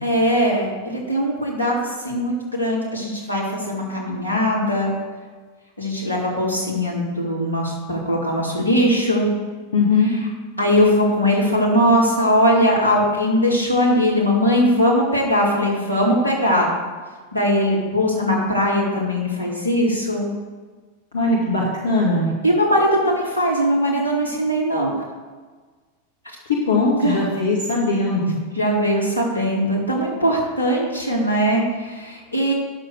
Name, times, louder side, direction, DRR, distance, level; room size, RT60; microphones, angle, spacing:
voice 1, 0.0-4.9 5.8-9.3 10.0-10.2 10.6-16.7 17.3-20.3 22.4-25.0 27.0-27.2 28.5-32.5, equal, 80° left, -4 dB, 3.0 m, -20 dB
voice 2, 9.7-10.1 21.1-22.3 26.5-28.4, left 3 dB, 65° left, -4 dB, 1.9 m, -20 dB
9.3 x 7.1 x 6.4 m, 1.4 s
figure-of-eight pair, 90°, 0 cm